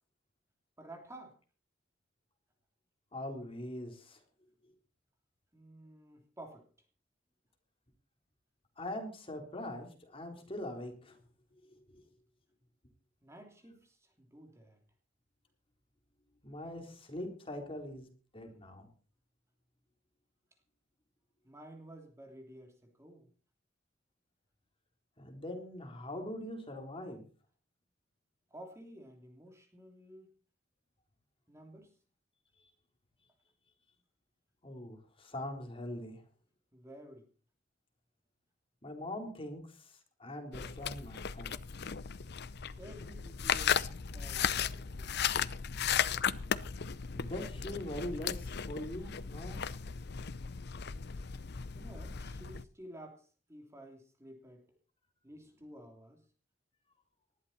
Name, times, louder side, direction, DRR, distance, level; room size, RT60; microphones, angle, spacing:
voice 1, 0.8-1.4 5.5-6.6 13.2-14.8 21.4-23.3 28.5-30.3 31.5-31.9 36.7-37.3 42.8-43.8 44.1-45.2 51.7-54.6 55.2-56.2, right 1 dB, 15° right, 3 dB, 3.0 m, -52 dB
voice 2, 3.1-4.2 8.8-11.2 11.6-12.0 16.4-18.1 18.3-18.9 25.2-27.2 34.6-36.2 38.8-39.9 40.2-41.5 47.1-49.6, left 1 dB, 30° left, 3 dB, 4.0 m, -42 dB
sound 1, 40.5-52.6, left 7 dB, 60° left, 0.7 m, -36 dB
20.0 x 14.0 x 4.3 m, 0.39 s
head